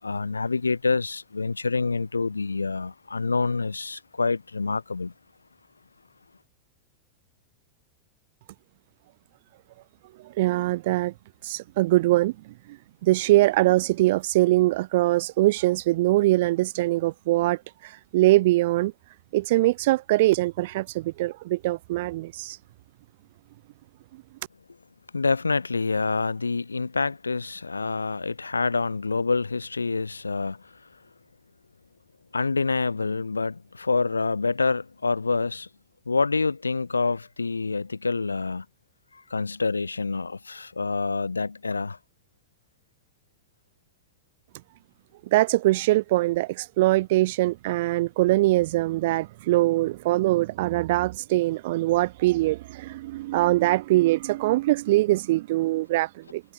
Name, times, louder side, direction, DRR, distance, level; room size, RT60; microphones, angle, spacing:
voice 1, 0.0-5.1 25.1-30.6 32.3-35.7 36.1-38.6 39.3-42.0, left 4 dB, 80° left, 7.4 m, -27 dB
voice 2, 10.4-11.1 11.4-12.3 13.0-18.9 19.3-22.6 45.3-56.4, right 18 dB, 55° right, 4.6 m, -22 dB
figure-of-eight pair, 90°, 0 cm